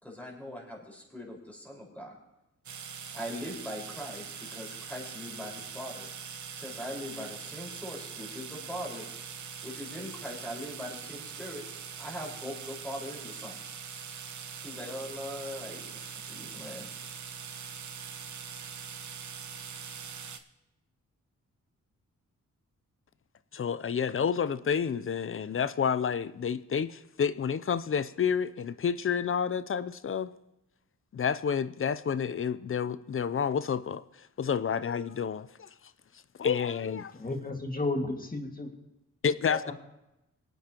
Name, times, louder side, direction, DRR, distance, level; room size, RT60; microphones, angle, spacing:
voice 1, 0.0-2.1 3.1-6.1 6.5-9.1 9.6-11.6 12.0-13.6 14.6-16.9, equal, 5° left, 4.9 m, -41 dB
sound 1, 2.7-20.4, right 7 dB, 65° right, 1.1 m, -42 dB
voice 2, 23.5-30.3 31.1-34.0 34.4-35.7 36.4-37.1 39.2-39.7, left 7 dB, 45° left, 0.6 m, -29 dB
voice 3, 37.1-38.7 39.5-39.7, left 2 dB, 25° left, 2.0 m, -33 dB
24.0 x 9.1 x 3.0 m
cardioid pair, 60°, 31 cm